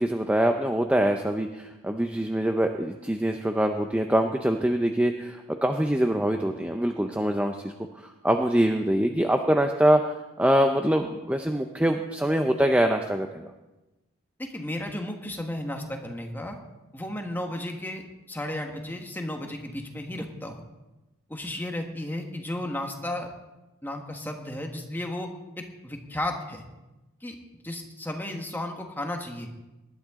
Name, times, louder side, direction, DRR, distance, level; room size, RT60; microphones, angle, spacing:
voice 1, 0.0-13.5, right 1 dB, 5° right, 5 dB, 0.5 m, -24 dB
voice 2, 14.4-16.6 16.9-18.0 18.3-20.6 21.3-23.3 23.8-25.3 25.6-26.6 27.2-27.4 27.6-29.5, left 1 dB, 10° left, 3 dB, 1.4 m, -34 dB
19.5 x 11.5 x 3.7 m, 1.0 s
head